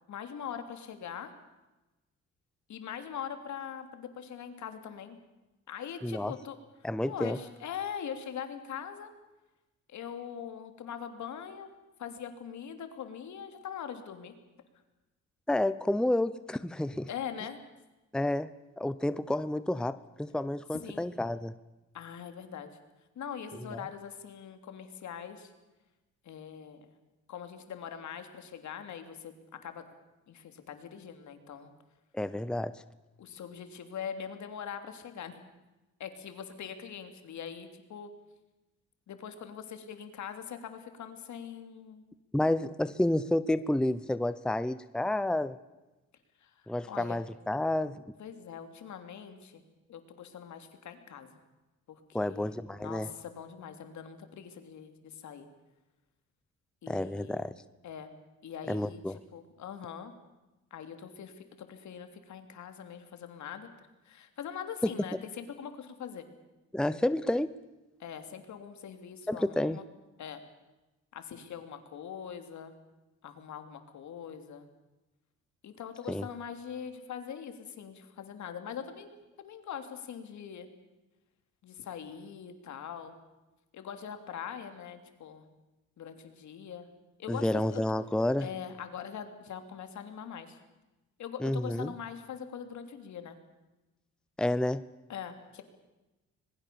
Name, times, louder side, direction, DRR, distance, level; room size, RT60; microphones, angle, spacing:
voice 1, 0.1-1.3 2.7-5.2 5.7-6.6 7.1-9.1 9.9-11.7 12.0-14.3 17.1-17.6 20.8-21.1 21.9-22.8 23.1-25.5 26.2-26.8 27.3-29.8 30.3-31.7 33.2-35.4 36.0-38.1 39.1-42.0 46.4-46.5 46.9-47.2 48.2-49.6 49.9-51.4 51.9-55.5 56.8-57.5 57.8-58.1 58.4-60.1 60.7-66.3 68.0-69.9 70.2-70.4 71.1-72.7 73.2-74.7 75.6-80.7 81.6-83.1 83.7-85.4 86.0-86.9 87.2-87.8 88.4-90.6 91.2-93.4 95.1-95.6, left 8 dB, 70° left, 8 dB, 3.2 m, -42 dB
voice 2, 6.0-6.3 6.8-7.4 15.5-17.1 18.1-21.5 23.7-23.8 32.1-32.8 42.3-45.6 46.7-48.0 52.1-53.1 56.9-57.5 58.7-59.2 64.8-64.9 66.7-67.5 69.3-69.8 76.1-76.3 87.3-88.5 91.4-91.9 94.4-94.8, left 1 dB, 5° left, 14 dB, 0.8 m, -30 dB
26.0 x 21.0 x 7.1 m, 1.1 s
cardioid pair, 90°, 30 cm